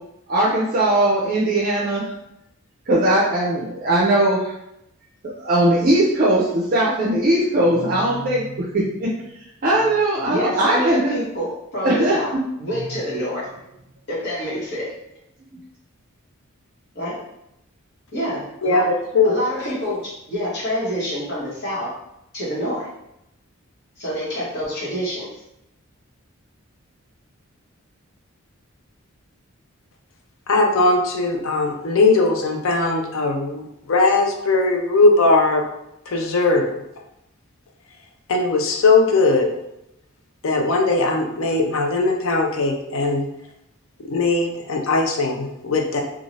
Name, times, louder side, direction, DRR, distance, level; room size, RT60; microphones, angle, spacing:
voice 1, 0.3-2.0 2.9-4.5 5.4-9.2 9.6-11.1 11.8-12.2 15.4-15.6, right 1 dB, 40° right, -5 dB, 0.5 m, -19 dB
voice 2, 10.3-12.3 12.6-13.5 14.1-14.9 16.9-17.2 18.1-18.9 19.2-20.0 20.3-21.9 22.3-22.9 24.0-25.3, equal, 50° left, -7 dB, 1.2 m, -27 dB
voice 3, 30.5-35.6 36.1-36.8 38.3-39.5 40.4-43.3 44.0-46.0, left 3 dB, 70° left, 3 dB, 0.5 m, -19 dB
2.6 x 2.4 x 3.1 m, 0.83 s
head